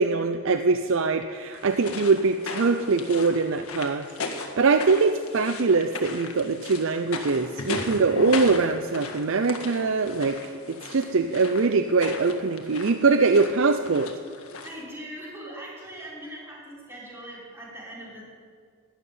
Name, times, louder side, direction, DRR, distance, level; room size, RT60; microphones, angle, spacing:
voice 1, 0.0-14.1, right 4 dB, 65° right, 9 dB, 0.5 m, -23 dB
sound 1, 1.5-14.8, left 3 dB, 85° left, 1.7 m, -37 dB
voice 2, 14.6-18.2, right 1 dB, 10° right, -7 dB, 5.4 m, -40 dB
12.0 x 11.0 x 9.3 m, 2.1 s
head